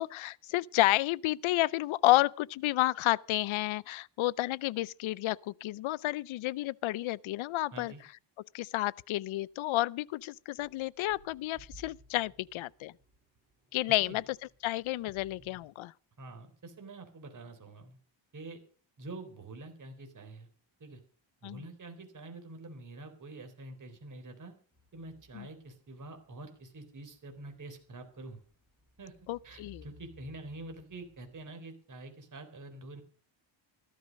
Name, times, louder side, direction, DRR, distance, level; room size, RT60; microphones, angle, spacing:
voice 1, 0.0-7.9 8.5-12.9 13.7-14.2 14.6-15.9 21.4-21.6 25.3-25.5 29.3-29.8, left 17 dB, 80° left, 0.6 m, -30 dB
voice 2, 7.7-8.0 13.9-14.2 16.2-18.0 18.3-18.6 19.0-20.5 20.8-21.0 21.4-24.5 24.9-28.4 29.0-29.1 29.4-33.0, right 2 dB, 40° right, 3.9 m, -46 dB
sound 1, 9.4-9.6 10.1-15.7, right 1 dB, 20° right, 4.4 m, -59 dB
sound 2, 24.7-31.5, left 2 dB, ahead, 7.6 m, -61 dB
14.5 x 13.0 x 5.3 m
cardioid pair, 145°, 48 cm